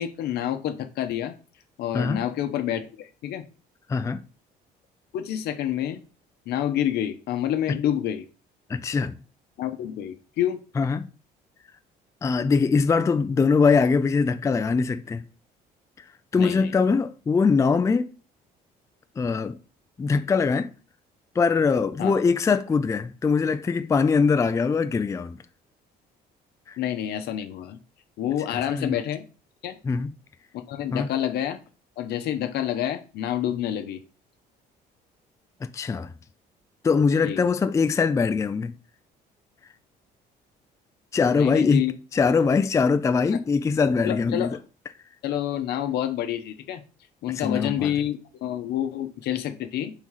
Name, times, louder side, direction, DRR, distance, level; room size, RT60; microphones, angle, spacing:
voice 1, 0.0-1.3 1.8-3.4 5.1-6.0 6.5-8.3 9.6-10.6 16.4-16.7 22.0-22.2 26.8-27.8 28.2-29.2 29.6-29.8 30.5-31.6 32.0-34.0 37.2-37.5 41.3-41.9 43.3-43.4 44.0-44.6 45.2-46.8 47.2-49.9, left 11 dB, 75° left, 0.8 m, -28 dB
voice 2, 3.9-4.2 7.7-7.8 8.7-9.2 10.8-11.1 12.2-15.2 16.3-18.1 19.2-19.6 20.0-20.7 21.4-25.4 26.7-26.8 28.5-28.9 29.8-30.1 30.9-31.1 35.7-36.1 36.8-38.7 41.1-41.8 42.1-44.5 47.3-47.9, left 5 dB, 20° left, 0.4 m, -22 dB
4.7 x 3.8 x 5.6 m
cardioid pair, 110°, 17 cm